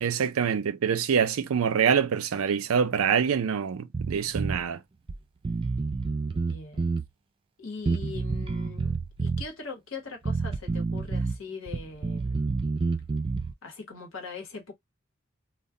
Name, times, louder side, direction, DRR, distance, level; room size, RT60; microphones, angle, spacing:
voice 1, 0.0-4.8, right 7 dB, 85° right, 0.4 m, -25 dB
Bass guitar, 3.9-4.6 5.1-5.2 5.4-7.1 7.9-9.5 10.2-11.4 11.7-13.5, right 4 dB, 25° right, 0.4 m, -29 dB
voice 2, 6.3-6.9 7.6-8.9 9.2-12.6 13.6-14.7, left 4 dB, 70° left, 1.1 m, -41 dB
2.2 x 2.2 x 3.6 m
head